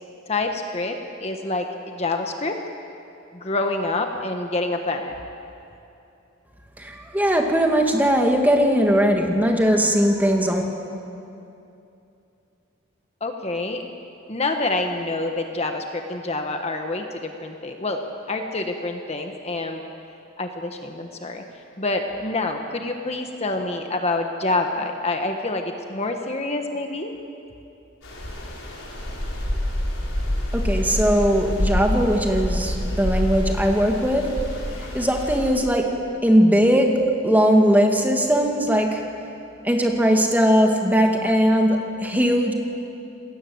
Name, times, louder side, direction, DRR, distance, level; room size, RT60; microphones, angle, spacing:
voice 1, 0.3-2.5 3.3-5.1 13.2-13.8 14.3-19.8 20.4-21.4 21.8-27.1, left 2 dB, 30° left, 4 dB, 1.5 m, -27 dB
voice 2, 6.8-10.6 30.5-34.3 34.9-35.9 36.2-36.9 37.2-39.0 39.6-42.5, equal, 10° right, 2 dB, 2.3 m, -19 dB
sound 1, 28.0-35.5, left 1 dB, 80° left, 6.1 m, -27 dB
27.5 x 21.0 x 8.0 m, 2.7 s
head